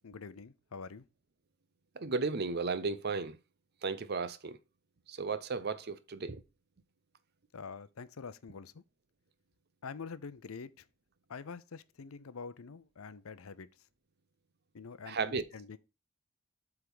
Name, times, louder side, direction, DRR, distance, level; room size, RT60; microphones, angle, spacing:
voice 1, 0.0-1.0 7.5-8.8 9.8-10.8 11.3-13.7 14.7-15.8, left 5 dB, 80° left, 0.6 m, -46 dB
voice 2, 2.0-3.4 3.8-4.6 5.1-6.4 15.1-15.4, right 4 dB, 50° right, 0.7 m, -34 dB
8.1 x 3.6 x 6.1 m
head